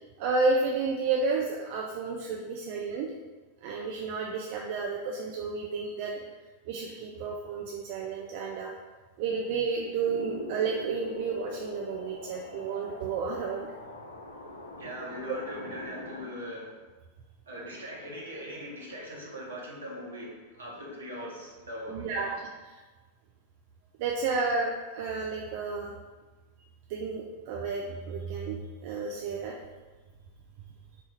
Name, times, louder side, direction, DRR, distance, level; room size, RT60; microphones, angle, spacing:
voice 1, 0.2-3.1 3.6-6.2 6.7-8.7 9.2-13.7 21.9-22.3 22.7-22.8 24.0-25.9 26.9-29.5, right 4 dB, 50° right, 0 dB, 0.4 m, -31 dB
sound 1, 10.0-16.3, left 1 dB, 70° left, 0.4 m, -42 dB
voice 2, 14.7-16.8 17.4-22.3, equal, 70° right, -4 dB, 1.1 m, -40 dB
4.2 x 2.3 x 4.1 m, 1.3 s
figure-of-eight pair, 90°, 0 cm